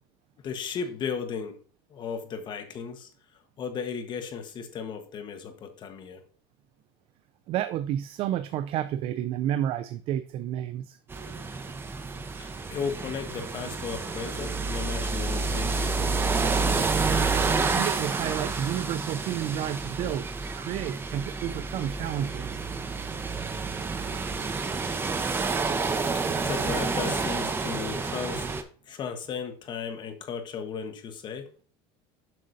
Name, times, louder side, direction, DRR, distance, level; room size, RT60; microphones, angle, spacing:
voice 1, 0.4-1.6 1.9-3.1 3.6-6.2 12.4-16.4 26.3-28.5 28.9-31.5, left 6 dB, 35° left, 7 dB, 1.2 m, -35 dB
voice 2, 7.5-11.0 16.0-16.1 17.7-22.5, right 11 dB, 45° right, 12 dB, 0.4 m, -31 dB
sound 1, 11.1-28.6, right 4 dB, 15° right, 0.8 m, -29 dB
7.6 x 6.2 x 2.7 m, 0.42 s
supercardioid pair, 135°, 13 cm